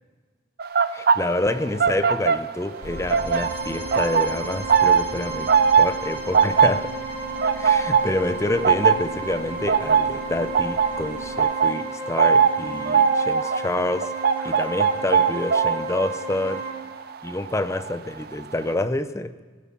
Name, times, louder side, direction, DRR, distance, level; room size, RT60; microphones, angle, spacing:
sound 1, 0.6-2.8 3.1-17.9 18.2-18.5, right 6 dB, 55° right, 0.5 m, -21 dB
voice 1, 0.9-7.0 7.6-14.1 14.4-16.7 17.2-19.4, left 2 dB, 15° left, 11 dB, 0.5 m, -27 dB
sound 2, 2.6-16.7, right 2 dB, 15° right, 3.4 m, -34 dB
sound 3, 2.8-11.4, equal, 70° left, 1.6 m, -42 dB
19.0 x 9.4 x 5.8 m, 1.4 s
head